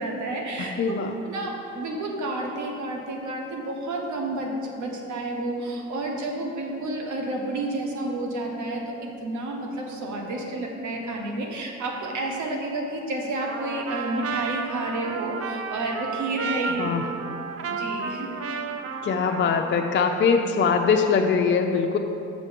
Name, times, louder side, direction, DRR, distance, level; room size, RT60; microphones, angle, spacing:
voice 1, 0.0-1.0 1.2-16.9 17.6-18.4, right 2 dB, 75° right, 1 dB, 1.3 m, -30 dB
voice 2, 0.6-1.1 16.8-17.0 19.0-22.0, left 5 dB, 40° left, 3 dB, 0.5 m, -22 dB
Trumpet, 13.4-20.0, right 5 dB, 50° right, 0.6 m, -33 dB
6.5 x 6.2 x 5.2 m, 2.8 s
cardioid pair, 90°, 30 cm